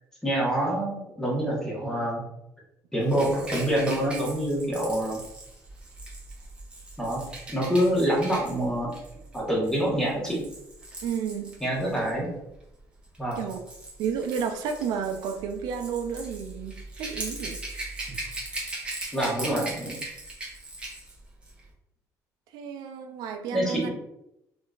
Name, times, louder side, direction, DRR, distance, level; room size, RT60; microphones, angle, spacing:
voice 1, 0.2-2.2 2.9-5.2 7.0-7.2 7.5-8.9 9.3-10.4 11.6-12.3 13.2-13.4 19.1-20.0 23.5-23.9, right 1 dB, 5° left, -4 dB, 1.0 m, -26 dB
Rattle / Rattle (instrument), 3.1-12.1 13.0-21.1 21.4-21.6, right 2 dB, 15° right, 0.8 m, -39 dB
voice 2, 11.0-11.6 13.4-13.6 14.0-17.6 22.5-23.9, right 7 dB, 80° right, 6 dB, 0.3 m, -31 dB
3.6 x 2.5 x 2.3 m, 0.85 s
cardioid pair, 135°, 7 cm